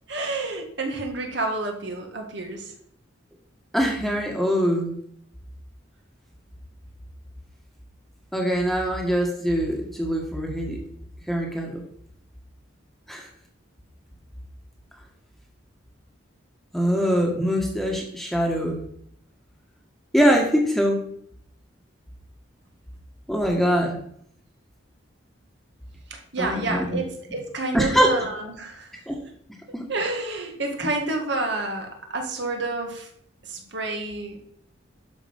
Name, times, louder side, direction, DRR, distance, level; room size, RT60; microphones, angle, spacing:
voice 1, 0.1-2.7 26.1-28.9 29.9-33.1 33.4-34.4, right 2 dB, 60° right, 3 dB, 2.0 m, -29 dB
voice 2, 3.7-5.0 8.3-10.8 11.3-11.8 13.1-13.3 16.7-18.8 20.1-21.0 23.3-24.0 26.4-27.0 27.7-28.1 29.1-29.2 29.7-29.9, equal, ahead, 0 dB, 1.7 m, -23 dB
12.0 x 5.7 x 5.4 m, 0.68 s
head